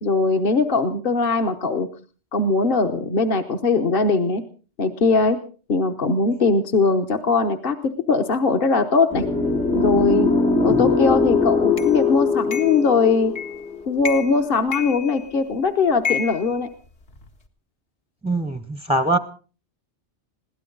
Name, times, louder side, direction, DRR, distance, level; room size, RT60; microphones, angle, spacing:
voice 1, 0.0-1.9 2.3-4.4 4.8-5.4 5.7-9.2 9.7-10.3 10.6-13.3 13.9-16.7, left 4 dB, 50° left, 6 dB, 1.2 m, -20 dB
sound 1, 9.1-14.2, left 4 dB, 85° left, 3.7 m, -21 dB
sound 2, 11.8-11.9 12.5-12.8 13.4-13.7 14.0-14.4 14.7-15.5 16.0-17.3, left 7 dB, 70° left, 2.1 m, -30 dB
voice 2, 18.2-19.2, right 2 dB, 5° right, 11 dB, 0.5 m, -22 dB
21.5 x 17.0 x 3.9 m, 0.38 s
omnidirectional pair, 1.2 m